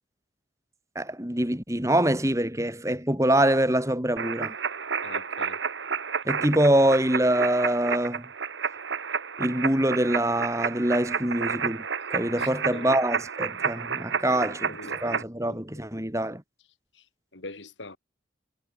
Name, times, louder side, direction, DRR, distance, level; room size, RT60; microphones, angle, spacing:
voice 1, 0.9-4.5 6.2-8.3 9.4-11.8 12.1-16.4, right 1 dB, 15° right, 2.6 m, -24 dB
sound 1, 4.2-15.2, right 6 dB, 85° right, 1.3 m, -31 dB
voice 2, 5.0-5.6 12.4-13.0 14.3-15.6 17.3-18.0, left 2 dB, 85° left, 3.4 m, -42 dB
head